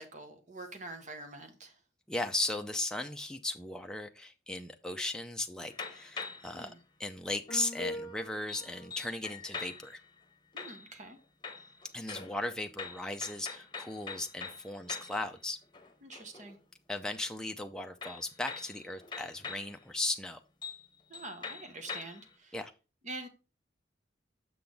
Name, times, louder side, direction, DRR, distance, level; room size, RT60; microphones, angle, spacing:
voice 1, 0.0-1.8 6.5-6.8 10.5-11.2 16.0-16.6 21.1-22.5 23.0-23.3, right 2 dB, 40° right, 1.2 m, -45 dB
voice 2, 2.1-6.7 7.0-10.0 11.9-15.6 16.9-20.4 22.5-22.7, left 2 dB, 5° left, 0.5 m, -37 dB
sound 1, 5.7-6.6 7.5-10.0 10.6-11.2 11.4-15.3 15.6-16.5 18.0-19.7 20.2-20.3 20.6-20.9 21.1-22.3, left 4 dB, 25° left, 1.0 m, -43 dB
6.9 x 5.9 x 3.5 m
head